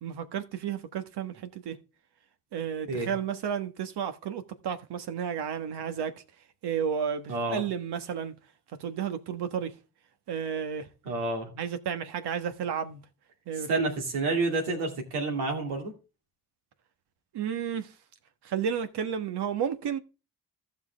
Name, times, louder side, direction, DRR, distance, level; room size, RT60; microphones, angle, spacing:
voice 1, 0.0-1.8 2.5-6.1 6.6-8.3 8.7-9.7 10.3-10.9 11.5-13.0 13.5-13.7 17.3-17.9 18.4-20.0, right 8 dB, 70° right, 1.4 m, -32 dB
voice 2, 7.3-7.6 11.0-11.5 13.6-15.9, right 3 dB, 90° right, 2.6 m, -29 dB
15.0 x 5.8 x 3.4 m
hypercardioid pair, 50°, 41 cm